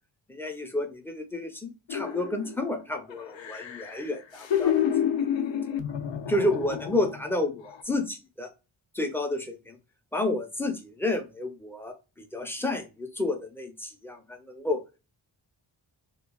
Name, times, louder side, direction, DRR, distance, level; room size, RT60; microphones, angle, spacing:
voice 1, 0.3-4.9 6.3-8.5 9.0-9.7 10.1-11.9 12.3-14.2 14.5-14.8, left 2 dB, 5° left, 4 dB, 0.5 m, -30 dB
sound 1, 1.9-2.7 3.1-7.3 7.6-7.8, left 9 dB, 70° left, 0.5 m, -29 dB
3.0 x 2.2 x 2.2 m, 0.28 s
wide cardioid pair, 95°, 47 cm